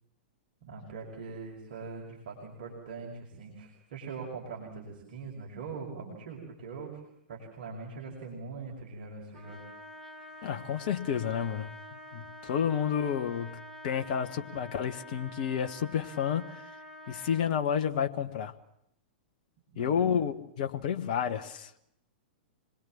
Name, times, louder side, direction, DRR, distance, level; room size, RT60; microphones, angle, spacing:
voice 1, 0.6-7.0 7.3-9.6 19.7-20.1, right 4 dB, 55° right, 5.5 m, -42 dB
Trumpet, 9.3-17.5, equal, 5° left, 4.7 m, -47 dB
voice 2, 10.4-16.5 17.1-18.5 19.7-21.8, left 8 dB, 50° left, 1.4 m, -30 dB
26.0 x 21.0 x 7.4 m
figure-of-eight pair, 105°, 6 cm